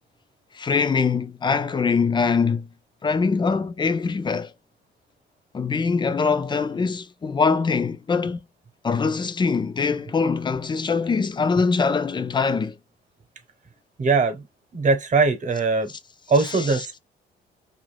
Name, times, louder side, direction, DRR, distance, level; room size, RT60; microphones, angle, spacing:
voice 1, 0.5-2.7 3.0-4.5 5.5-8.4 8.8-12.7 16.4-16.8, left 5 dB, 25° left, 0.4 m, -23 dB
voice 2, 14.0-14.5 14.7-15.9 16.3-17.0, right 4 dB, 40° right, 1.0 m, -21 dB
2.5 x 2.3 x 3.3 m
cardioid pair, 90°, 20 cm